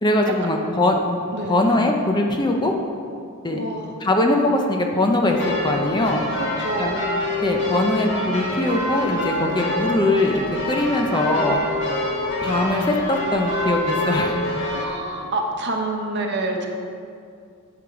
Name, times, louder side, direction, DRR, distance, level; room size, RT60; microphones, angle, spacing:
voice 1, 0.0-1.0 1.4-2.7 3.4-3.6 4.0-6.3 6.8-6.9 7.4-10.4 10.7-11.6 12.4-14.5, left 2 dB, 20° left, 2 dB, 0.6 m, -21 dB
voice 2, 3.5-3.9 6.4-7.0 14.7-16.7, right 2 dB, 50° right, 2 dB, 1.0 m, -27 dB
sound 1, 5.3-14.8, left 1 dB, 55° left, 1.6 m, -26 dB
7.9 x 7.1 x 4.8 m, 2.4 s
head